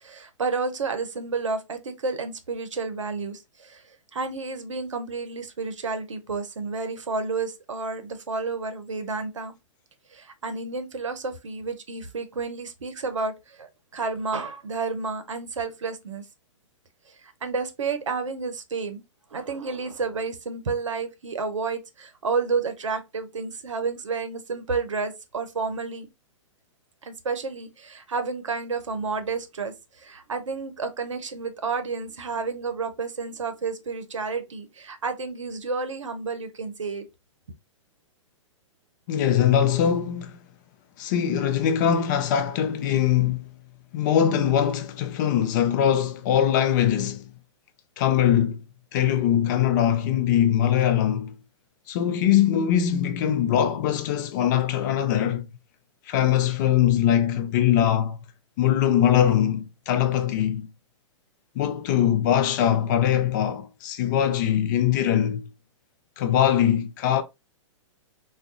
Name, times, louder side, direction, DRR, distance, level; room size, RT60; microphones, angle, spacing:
voice 1, 0.0-9.5 10.1-16.2 17.2-19.0 19.3-26.1 27.0-37.1, right 4 dB, 75° right, 0.7 m, -31 dB
voice 2, 39.1-40.4 41.0-43.5 43.9-47.3 48.0-48.6 48.9-51.3 51.9-55.5 56.1-58.2 58.6-60.7 61.6-65.4 66.2-67.2, left 10 dB, 35° left, 0.4 m, -22 dB
3.5 x 2.2 x 2.5 m
figure-of-eight pair, 110°, 16 cm